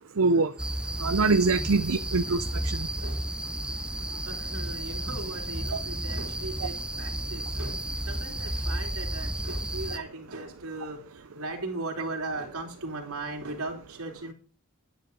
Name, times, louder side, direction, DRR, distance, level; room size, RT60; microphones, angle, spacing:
voice 1, 0.2-0.5 1.0-2.9, right 3 dB, 65° right, 11 dB, 0.6 m, -24 dB
sound 1, 0.6-10.0, right 1 dB, 5° right, 0.8 m, -32 dB
voice 2, 2.7-3.3 4.2-14.3, right 2 dB, 85° right, 1 dB, 3.4 m, -38 dB
12.0 x 9.7 x 4.0 m, 0.38 s
head